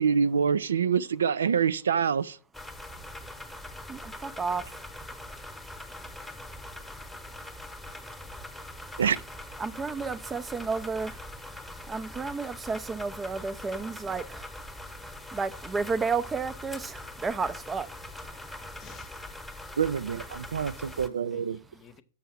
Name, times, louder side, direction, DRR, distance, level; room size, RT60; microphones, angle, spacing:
voice 1, 0.0-2.4 9.0-9.2 19.8-21.6, right 7 dB, 70° right, 0.4 m, -26 dB
sound 1, 2.5-21.1, left 1 dB, 5° left, 1.1 m, -42 dB
voice 2, 3.9-4.7 9.6-11.2 11.9-14.4 15.3-17.9, right 4 dB, 15° right, 0.5 m, -32 dB
voice 3, 18.6-19.3 20.6-22.0, left 8 dB, 30° left, 0.9 m, -56 dB
7.1 x 5.5 x 6.2 m
figure-of-eight pair, 100°, 0 cm